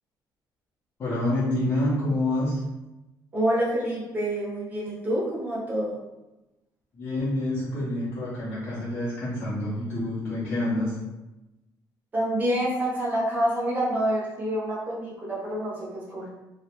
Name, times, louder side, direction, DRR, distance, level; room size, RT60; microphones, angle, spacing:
voice 1, 1.0-2.6 6.9-11.0, left 1 dB, 25° left, -10 dB, 0.6 m, -27 dB
voice 2, 3.3-6.0 12.1-16.3, right 1 dB, 25° right, -6 dB, 0.7 m, -27 dB
2.2 x 2.1 x 2.9 m, 1.0 s
cardioid pair, 170°, 8 cm